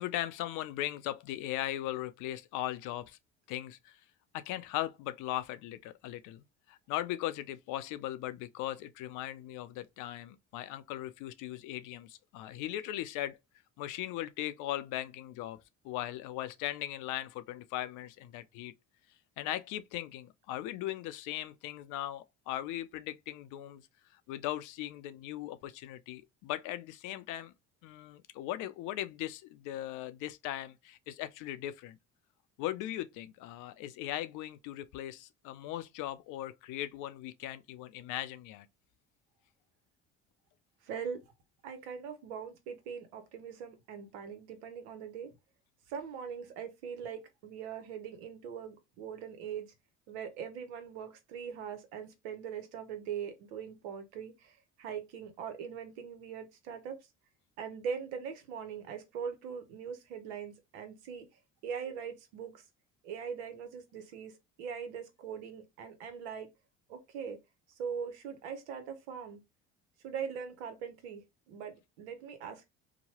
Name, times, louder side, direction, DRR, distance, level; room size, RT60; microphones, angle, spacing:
voice 1, 0.0-3.2 3.5-4.0 4.3-13.4 13.8-18.7 19.4-23.8 24.1-27.5 27.8-32.0 32.6-38.7, left 14 dB, 65° left, 0.5 m, -38 dB
voice 2, 40.8-41.2 41.6-45.3 45.9-49.7 50.1-57.0 57.6-61.3 61.6-62.6 63.0-66.5 66.9-67.4 67.8-69.4 70.0-72.6, right 7 dB, 85° right, 0.9 m, -41 dB
2.9 x 2.2 x 2.8 m
hypercardioid pair, 65°, 33 cm